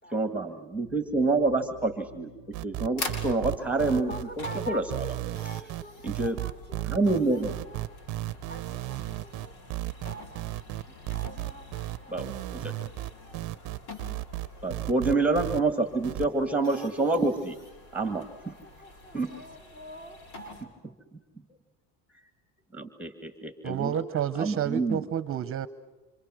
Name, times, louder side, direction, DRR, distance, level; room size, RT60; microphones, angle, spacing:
voice 1, 0.1-2.3 2.6-5.1 6.0-6.4 6.9-7.5 12.1-12.9 14.6-17.6 17.9-18.5 19.1-19.3 20.6-21.4 22.1-22.3 22.7-24.0 24.3-25.1, right 3 dB, 5° right, 7 dB, 2.0 m, -28 dB
sound 1, 0.7-15.5, left 1 dB, 85° left, 3.8 m, -53 dB
sound 2, 2.5-15.6 16.0-16.3, right 18 dB, 55° right, 0.8 m, -34 dB
sound 3, 3.0-20.6, left 2 dB, 70° left, 6.5 m, -46 dB
voice 2, 4.1-8.0 8.5-9.6 11.1-12.9 13.3-13.8 18.4-20.3, right 1 dB, 25° left, 6 dB, 5.0 m, -46 dB
voice 3, 23.6-25.7, right 9 dB, 35° right, 12 dB, 1.1 m, -29 dB
30.0 x 27.0 x 6.3 m, 1.2 s
cardioid pair, 120°, 38 cm